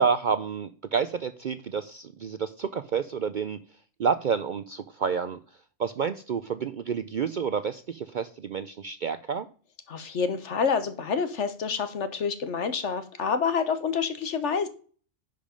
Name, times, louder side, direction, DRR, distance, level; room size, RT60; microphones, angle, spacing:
voice 1, 0.0-3.6 4.0-5.4 5.8-9.5, right 6 dB, 60° right, 12 dB, 0.5 m, -29 dB
voice 2, 9.9-14.7, left 6 dB, 65° left, 10 dB, 1.4 m, -28 dB
10.5 x 5.2 x 5.2 m, 0.40 s
omnidirectional pair, 1.3 m